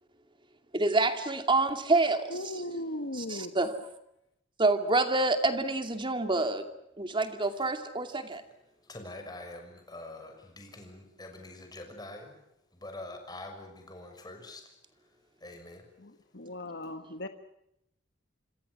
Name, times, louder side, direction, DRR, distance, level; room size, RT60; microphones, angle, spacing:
voice 1, 0.7-2.3 3.3-3.7 4.6-6.6 7.0-8.4, right 2 dB, 25° right, 2.6 m, -27 dB
voice 2, 2.3-3.5 16.0-17.3, left 1 dB, 60° left, 1.5 m, -37 dB
voice 3, 8.9-12.3 12.8-14.6 15.4-15.8, left 2 dB, 20° left, 6.2 m, -45 dB
27.0 x 26.0 x 6.2 m
head